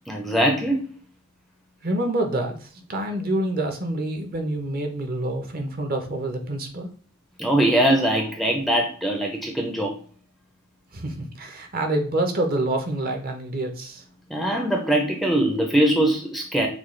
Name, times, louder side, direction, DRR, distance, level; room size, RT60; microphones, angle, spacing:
voice 1, 0.1-0.9 7.4-9.9 14.3-16.7, right 1 dB, ahead, 1 dB, 0.5 m, -22 dB
voice 2, 1.8-6.9 10.9-14.0, right 1 dB, 40° right, 4 dB, 0.7 m, -27 dB
6.1 x 2.3 x 3.1 m, 0.43 s
head